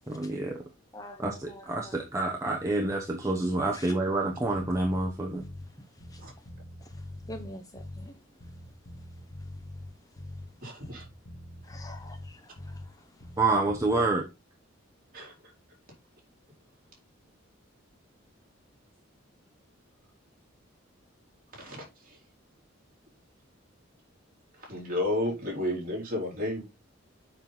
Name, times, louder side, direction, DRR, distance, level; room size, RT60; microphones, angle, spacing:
voice 1, 0.1-0.6 1.2-5.4 13.4-14.2, right 2 dB, 15° right, 0.9 m, -28 dB
voice 2, 0.9-2.0 3.7-3.9 5.3-6.5 6.8-8.6 8.9-10.9 11.6-13.4, left 1 dB, 15° left, 0.7 m, -49 dB
Bass guitar, 4.5-5.7 6.0-8.1 8.4-10.5 10.8-12.9 13.2-14.1, left 1 dB, 90° left, 1.6 m, -44 dB
voice 3, 10.6-11.1 15.1-15.5 21.5-22.2 24.6-26.6, left 1 dB, 45° right, 3.6 m, -32 dB
7.1 x 5.6 x 4.0 m
head